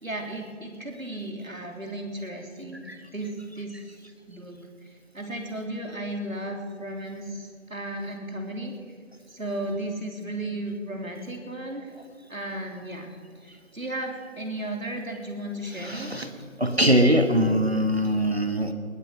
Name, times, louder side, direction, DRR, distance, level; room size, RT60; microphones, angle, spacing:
voice 1, 0.0-4.0 4.3-8.7 9.3-11.9 12.3-13.1 13.4-16.2, right 1 dB, 90° right, 2 dB, 3.6 m, -35 dB
voice 2, 15.8-16.3 16.6-18.7, equal, 50° right, 8 dB, 1.4 m, -22 dB
20.0 x 10.0 x 6.6 m, 2.2 s
figure-of-eight pair, 180°, 40 cm